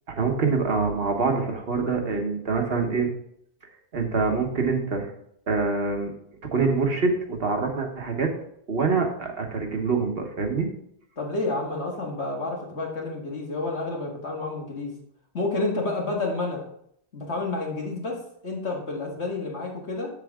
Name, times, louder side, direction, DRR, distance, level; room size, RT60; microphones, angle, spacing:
voice 1, 0.1-3.1 3.9-5.1 5.5-6.1 6.5-8.3 8.7-10.7, right 4 dB, 60° right, 3 dB, 1.4 m, -25 dB
voice 2, 11.2-15.0 15.3-16.6 17.1-20.1, left 2 dB, 80° left, -1 dB, 2.1 m, -30 dB
7.4 x 7.1 x 3.6 m, 0.70 s
omnidirectional pair, 1.1 m